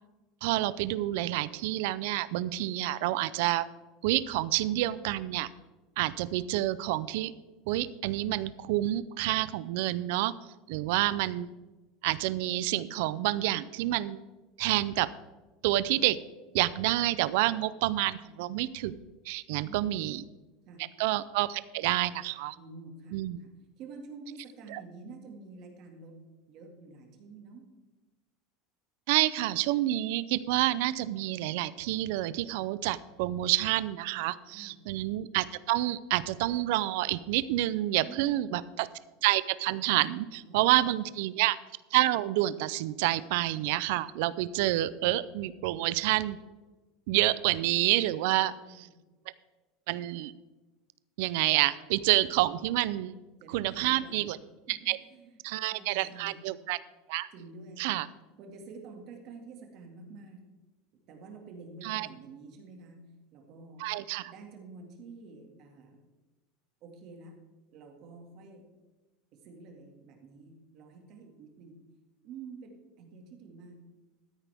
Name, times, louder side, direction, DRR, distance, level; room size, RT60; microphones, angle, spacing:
voice 1, 0.4-3.7 4.0-5.5 6.0-7.3 7.7-10.3 10.7-11.5 12.0-14.2 14.6-15.1 15.6-16.2 16.5-18.9 19.3-20.2 21.0-22.6 23.1-23.4 24.7-24.8 29.1-38.9 39.2-41.6 41.9-46.4 47.1-48.9 49.9-50.3 51.2-53.1 53.5-54.4 54.7-55.0 55.4-56.8 57.1-57.3 57.8-58.1 61.8-62.1 63.8-64.3, right 16 dB, 65° right, 16 dB, 0.5 m, -28 dB
voice 2, 22.6-27.7 34.5-34.8 37.9-38.8 40.4-41.1 48.2-49.0 53.4-54.3 54.7-55.4 55.7-56.4 57.3-58.1 58.4-60.5 61.1-63.9 64.2-66.0 66.8-67.4 67.7-68.6 69.3-71.8 72.2-73.8, right 4 dB, 45° right, 3 dB, 2.1 m, -49 dB
13.0 x 9.9 x 3.5 m, 1.2 s
supercardioid pair, 160°, 0 cm